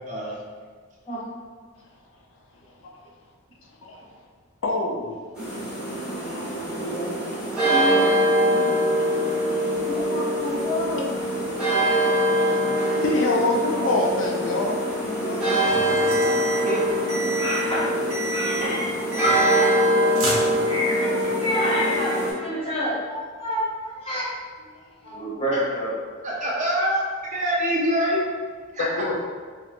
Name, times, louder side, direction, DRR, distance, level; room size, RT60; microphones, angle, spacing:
voice 1, 0.1-0.4 16.6-16.8 26.2-27.0 27.3-28.2 28.7-28.9, equal, 35° right, -4 dB, 0.5 m, -24 dB
voice 2, 2.5-2.9 3.6-4.3 4.6-5.9 6.2-6.9 9.0-9.8 12.3-15.8 18.3-18.4 24.1-24.2 24.7-25.3 28.8-29.1, left 2 dB, 60° left, -1 dB, 0.4 m, -29 dB
sound 1, 5.3-22.3, equal, 5° right, 0.8 m, -23 dB
voice 3, 6.8-7.2 7.4-8.1 8.4-8.7 9.6-11.2 11.4-11.5 13.8-13.9 15.2-15.4 17.4-17.9 18.3-18.8 19.2-19.8 20.6-23.7 24.0-24.3 25.0-25.9, equal, 25° left, -7 dB, 0.8 m, -28 dB
sound 2, 15.7-16.7 17.1-17.7 18.1-18.7 19.1-19.9 20.1-21.0, right 3 dB, 80° right, 0.8 m, -30 dB
3.2 x 2.8 x 2.4 m, 1.6 s
head